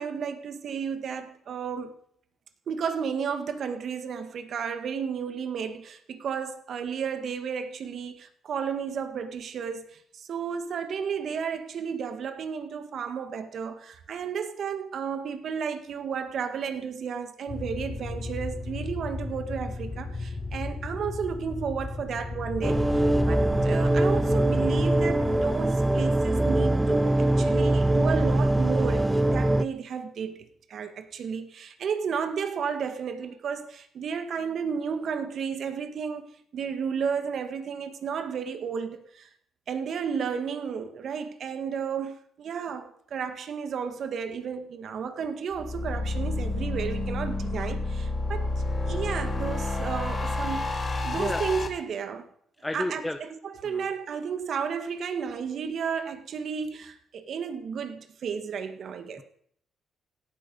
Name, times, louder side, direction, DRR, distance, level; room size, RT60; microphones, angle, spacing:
voice 1, 0.0-2.0 2.7-36.3 36.5-39.3 39.7-48.5 48.9-52.3 52.7-53.0 53.4-59.2, right 6 dB, 60° right, 1.8 m, -33 dB
sound 1, 17.5-25.4, left 3 dB, 50° left, 3.7 m, -34 dB
sound 2, 22.6-29.6, right 1 dB, 10° right, 0.8 m, -23 dB
sound 3, 45.5-51.7, left 2 dB, 35° left, 4.1 m, -29 dB
voice 2, 51.1-51.4 52.6-53.2 53.6-53.9, left 1 dB, 10° left, 1.3 m, -32 dB
17.0 x 12.5 x 5.5 m
cardioid pair, 90°, 0 cm